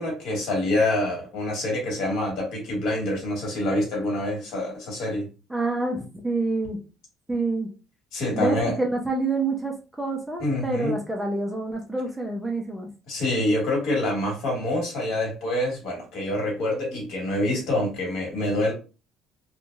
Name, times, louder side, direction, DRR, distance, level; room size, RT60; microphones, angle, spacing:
voice 1, 0.0-5.3 8.1-8.7 10.4-11.0 13.1-18.7, left 1 dB, 60° left, -1 dB, 1.5 m, -26 dB
voice 2, 5.5-6.8 7.3-7.7 8.4-12.9, right 2 dB, 5° right, 0 dB, 0.4 m, -27 dB
2.9 x 2.6 x 2.3 m, 0.32 s
cardioid pair, 170°, 0 cm